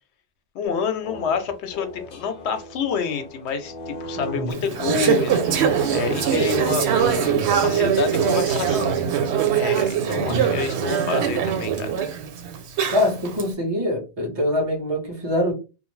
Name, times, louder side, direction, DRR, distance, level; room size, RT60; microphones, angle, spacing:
voice 1, 0.5-5.6 5.9-7.3 7.6-9.0 9.5-12.0, left 6 dB, 90° left, 9 dB, 0.9 m, -28 dB
sound 1, 0.6-9.5, left 1 dB, 60° left, 0.7 m, -39 dB
voice 2, 4.2-4.6 10.1-10.6 12.9-15.5, left 1 dB, 25° right, -2 dB, 1.1 m, -24 dB
Conversation / Chatter, 4.5-13.4, right 8 dB, 90° right, 0.9 m, -22 dB
2.6 x 2.1 x 3.1 m, 0.30 s
omnidirectional pair, 1.1 m